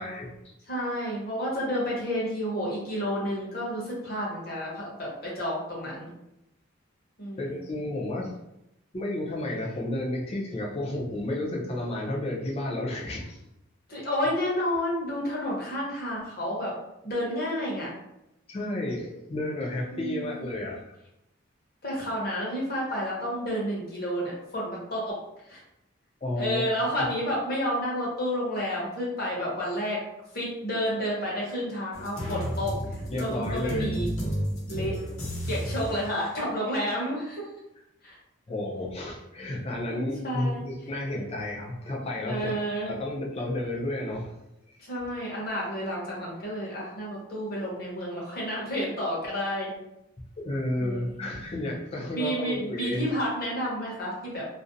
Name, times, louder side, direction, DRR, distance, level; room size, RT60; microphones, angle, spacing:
voice 1, 0.0-0.5 7.4-8.3 8.9-13.4 18.5-20.9 26.2-26.7 33.1-33.9 38.5-42.5 42.9-44.3 44.7-44.8 50.4-53.1, left 1 dB, 30° left, -2 dB, 0.4 m, -32 dB
voice 2, 0.7-6.1 7.2-7.6 13.9-16.8 17.0-17.9 19.9-20.5 21.8-25.2 25.4-25.6 26.4-30.0 30.3-34.1 34.7-35.0 35.5-37.5 38.0-38.2 39.9-40.6 42.2-42.9 44.8-49.7 50.8-51.3 52.1-54.5, equal, 45° left, -4 dB, 0.8 m, -30 dB
sound 1, 31.9-36.0, equal, 90° left, 0.9 m, -32 dB
2.4 x 2.0 x 2.6 m, 0.87 s
head